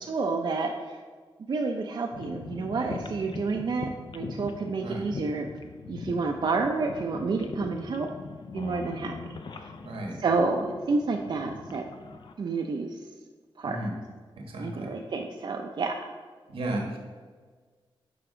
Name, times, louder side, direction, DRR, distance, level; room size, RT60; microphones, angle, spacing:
voice 1, 0.0-1.0 1.5-5.5 5.9-8.1 8.5-9.1 9.5-9.6 10.2-11.9 12.4-13.0 13.6-13.8 14.6-16.0, right 4 dB, 55° right, 2 dB, 0.4 m, -29 dB
sound 1, 2.1-12.3, left 4 dB, 60° left, 0.5 m, -41 dB
voice 2, 9.8-10.2 13.6-13.9 14.4-14.9 16.5-17.0, right 1 dB, 90° right, 1 dB, 1.2 m, -33 dB
6.8 x 4.7 x 3.7 m, 1.5 s
wide cardioid pair, 95°, 9 cm